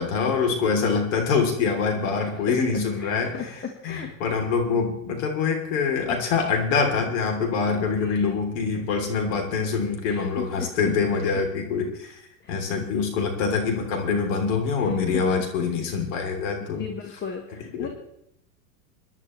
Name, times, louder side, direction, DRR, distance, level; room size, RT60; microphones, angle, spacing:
voice 1, 0.0-12.2 12.5-16.9 17.7-17.9, left 5 dB, 65° left, 3 dB, 3.5 m, -25 dB
voice 2, 2.1-2.6 3.0-3.5 3.8-4.1 7.7-8.4 10.0-10.7 11.2-11.4 12.4-12.5 14.8-14.9 16.6-17.9, left 6 dB, 25° left, 4 dB, 1.5 m, -37 dB
24.0 x 10.5 x 3.3 m, 0.75 s
supercardioid pair, 120°, 41 cm